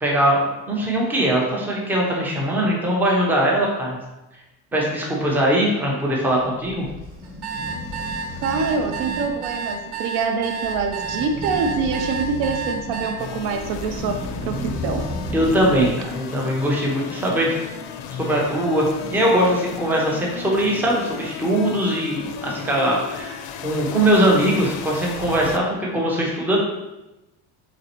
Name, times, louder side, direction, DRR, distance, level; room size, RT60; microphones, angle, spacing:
voice 1, 0.0-4.0 4.7-6.9 15.3-17.6 18.2-26.6, right 1 dB, 5° right, -2 dB, 0.3 m, -21 dB
sound 1, 6.6-16.1, left 1 dB, 20° right, 0.9 m, -33 dB
sound 2, 7.2-13.1, right 5 dB, 50° right, 0.7 m, -30 dB
voice 2, 8.4-14.1 14.5-14.6 14.8-15.0, right 5 dB, 85° right, 5 dB, 0.6 m, -25 dB
sound 3, 13.2-25.6, left 7 dB, 90° left, 0.5 m, -35 dB
4.0 x 3.2 x 2.8 m, 1.0 s
cardioid pair, 170°, 38 cm